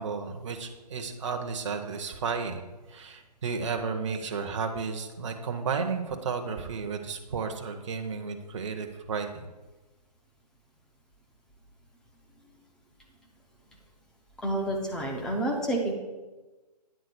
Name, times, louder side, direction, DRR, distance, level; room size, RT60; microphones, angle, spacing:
voice 1, 0.0-2.6 2.9-9.3, right 5 dB, 45° right, 5 dB, 0.8 m, -33 dB
voice 2, 14.4-15.9, right 1 dB, 5° left, 0 dB, 0.5 m, -29 dB
9.1 x 3.8 x 6.6 m, 1.2 s
figure-of-eight pair, 145°, 21 cm